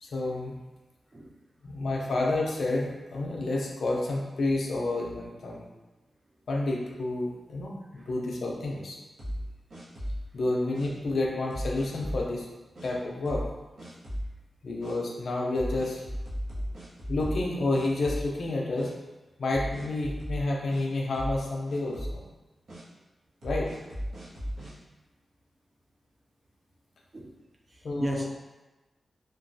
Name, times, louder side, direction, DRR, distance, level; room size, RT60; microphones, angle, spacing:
voice 1, 0.0-0.5 1.6-5.7 6.5-9.0 10.3-12.5 12.8-13.5 14.6-16.0 17.1-18.9 19.4-22.2 23.4-23.7 27.8-28.2, left 2 dB, 70° left, -1 dB, 0.5 m, -29 dB
sound 1, 9.2-10.3 10.7-10.9 11.5-12.3 12.8-12.9 13.3-13.5 13.8-14.3 14.8-15.0 15.6-17.5 17.7-18.5 18.8-18.9 19.5-20.8 21.1-21.4 21.7-22.2 22.7-22.8 23.4-24.7, equal, 70° right, 0.9 m, -35 dB
voice 2, 27.7-28.3, right 1 dB, 30° right, 1 dB, 0.3 m, -37 dB
2.9 x 2.2 x 2.6 m, 1.1 s
wide cardioid pair, 120°, 0 cm